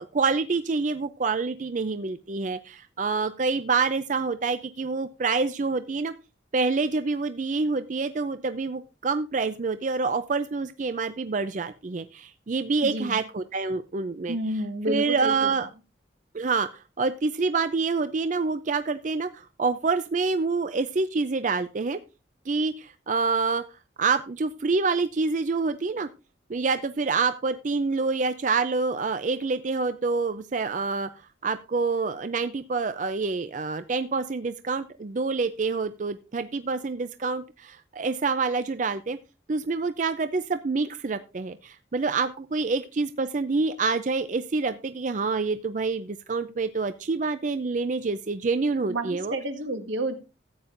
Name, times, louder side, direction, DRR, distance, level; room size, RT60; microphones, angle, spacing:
voice 1, 0.0-6.1 6.5-14.4 14.9-15.7 16.3-22.0 22.5-23.6 24.0-26.1 26.5-31.1 31.4-39.2 39.5-49.3, right 4 dB, 40° right, 11 dB, 0.4 m, -27 dB
voice 2, 12.8-13.2 14.3-15.5 48.9-50.1, right 1 dB, 85° right, 7 dB, 1.5 m, -30 dB
14.0 x 8.7 x 2.5 m, 0.28 s
head